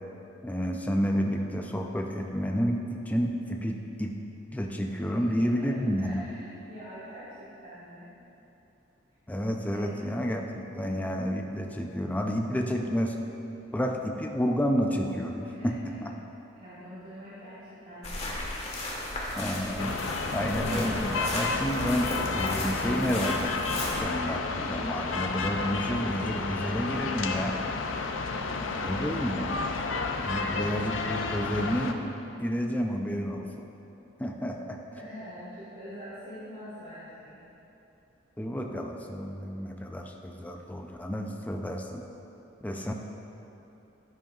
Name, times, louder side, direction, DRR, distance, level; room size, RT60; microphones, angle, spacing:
voice 1, 0.4-4.2 4.5-6.2 9.3-13.2 13.7-16.1 19.4-20.0 20.3-27.6 28.8-29.5 30.2-32.0 32.4-33.6 34.2-34.8 38.4-42.0 42.6-42.9, equal, 10° left, 2 dB, 0.5 m, -30 dB
voice 2, 5.0-8.2 9.7-10.0 15.4-16.0 16.6-18.8 28.0-29.9 30.3-30.8 34.9-37.4, equal, 45° right, -11 dB, 1.6 m, -45 dB
sound 1, 18.0-24.0, left 2 dB, 35° left, 1.5 m, -35 dB
sound 2, 19.8-31.9, left 4 dB, 90° left, 0.6 m, -31 dB
10.5 x 10.5 x 2.4 m, 3.0 s
head